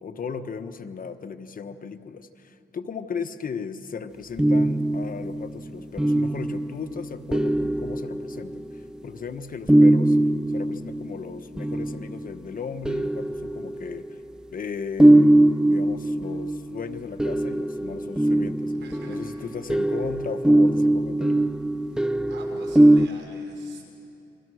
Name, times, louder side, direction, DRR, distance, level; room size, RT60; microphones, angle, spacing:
voice 1, 0.0-10.2 10.5-14.2 14.5-18.7 19.1-21.4, left 6 dB, 50° left, 9 dB, 1.1 m, -36 dB
sound 1, 4.4-9.0 9.7-12.3 12.9-14.3 15.0-23.1, right 1 dB, 5° right, 0.6 m, -21 dB
voice 2, 18.8-19.5 21.9-22.0 22.3-23.8, right 2 dB, 75° right, 1 dB, 5.3 m, -45 dB
28.5 x 23.5 x 6.4 m, 2.7 s
cardioid pair, 85°, 19 cm